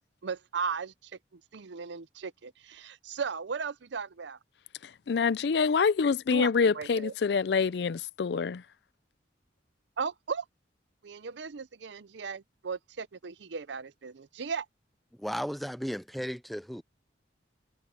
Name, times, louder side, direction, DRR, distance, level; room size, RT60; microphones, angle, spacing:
voice 1, 0.2-4.4 6.3-7.1 10.0-10.4 11.0-14.7, right 5 dB, 75° right, 0.6 m, -36 dB
voice 2, 5.1-8.6, left 5 dB, 65° left, 0.4 m, -26 dB
voice 3, 15.2-16.8, equal, ahead, 0.4 m, -35 dB
head